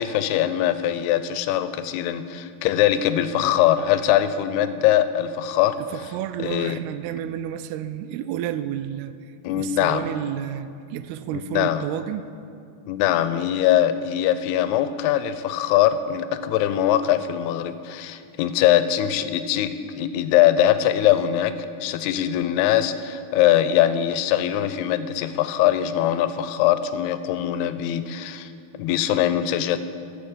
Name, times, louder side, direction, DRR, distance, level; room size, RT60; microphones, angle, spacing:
voice 1, 0.0-5.8 6.4-6.8 9.4-10.0 11.3-11.9 12.9-28.5 28.8-29.8, left 11 dB, 90° left, 12 dB, 2.6 m, -22 dB
voice 2, 5.8-9.1 9.5-12.3, right 11 dB, 85° right, 12 dB, 2.5 m, -31 dB
14.0 x 7.1 x 7.2 m, 2.4 s
omnidirectional pair, 4.5 m